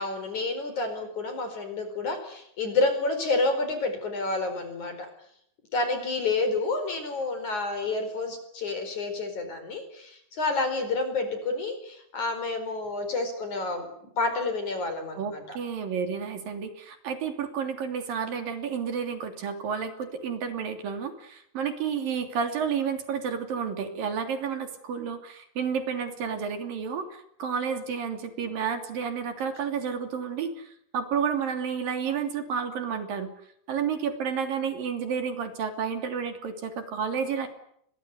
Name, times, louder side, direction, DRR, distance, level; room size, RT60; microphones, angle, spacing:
voice 1, 0.0-5.1 5.7-13.9 14.2-15.6, left 3 dB, 45° left, 8 dB, 5.7 m, -29 dB
voice 2, 15.1-33.3 33.7-37.5, right 6 dB, 60° right, 7 dB, 4.6 m, -31 dB
28.5 x 22.5 x 8.2 m, 0.71 s
omnidirectional pair, 4.8 m